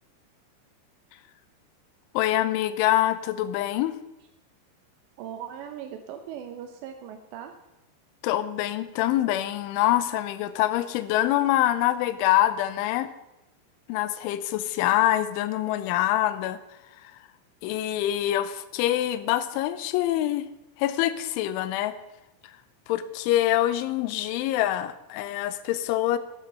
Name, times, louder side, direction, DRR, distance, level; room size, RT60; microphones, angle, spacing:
voice 1, 2.1-3.9 8.2-13.1 13.9-16.6 17.6-20.5 20.8-22.0 22.9-26.2, left 13 dB, 90° left, 14 dB, 3.2 m, -25 dB
voice 2, 5.2-7.5, right 9 dB, 80° right, 6 dB, 2.9 m, -39 dB
12.5 x 11.5 x 5.5 m, 0.94 s
omnidirectional pair, 5.4 m